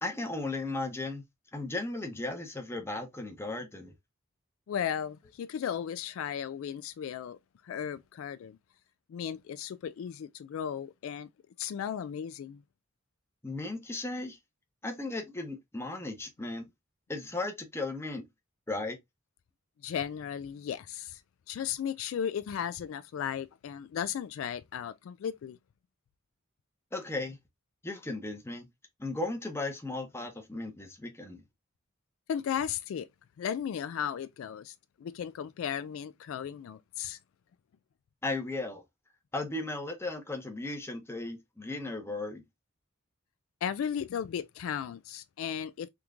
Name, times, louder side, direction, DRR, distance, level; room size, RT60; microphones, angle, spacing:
voice 1, 0.0-1.2 1.5-3.9 13.4-14.4 14.8-16.7 17.1-18.3 18.7-19.0 26.9-27.4 27.8-28.7 29.0-31.4 38.2-38.8 39.3-42.4, left 2 dB, 10° left, 0.8 m, -36 dB
voice 2, 4.7-7.4 7.6-8.6 9.1-11.3 11.6-12.6 19.8-21.2 21.5-25.6 32.3-33.1 33.4-37.2 43.6-45.9, left 8 dB, 70° left, 0.3 m, -35 dB
3.5 x 3.0 x 2.3 m
head